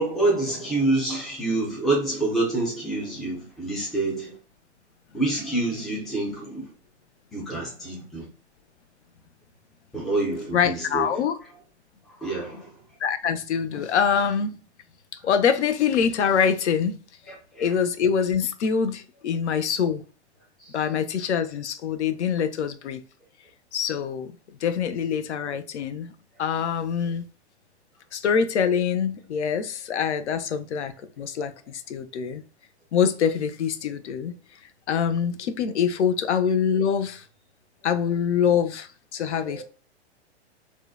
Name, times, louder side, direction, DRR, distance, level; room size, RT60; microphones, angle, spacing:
voice 1, 0.0-4.4 5.1-6.7 7.3-8.3 9.9-11.1 12.1-12.8 17.3-17.7 20.6-20.8 39.4-39.6, right 2 dB, ahead, 0.3 m, -27 dB
voice 2, 10.5-11.4 13.0-14.6 15.2-17.0 17.6-20.0 20.7-23.0 23.7-24.3 24.6-26.1 26.4-27.3 28.1-32.4 32.9-34.4 34.9-37.2 37.8-39.6, left 7 dB, 75° left, 0.5 m, -24 dB
2.7 x 2.1 x 2.3 m
hypercardioid pair, 120°, 34 cm